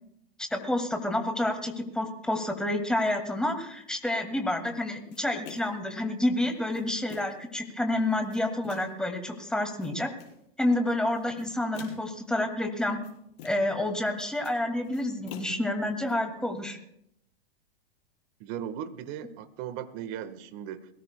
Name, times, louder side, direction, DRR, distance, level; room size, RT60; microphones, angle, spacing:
voice 1, 0.4-10.1 10.6-13.0 13.4-16.8, left 1 dB, ahead, 4 dB, 2.2 m, -29 dB
sound 1, 5.1-5.9 6.5-7.5 8.0-9.0 9.6-10.4 11.2-12.2 12.8-13.8 14.1-16.1, left 8 dB, 55° left, 5.1 m, -48 dB
voice 2, 18.4-20.9, right 9 dB, 45° right, 11 dB, 1.4 m, -37 dB
22.0 x 17.5 x 2.2 m, 0.75 s
hypercardioid pair, 120°, 30 cm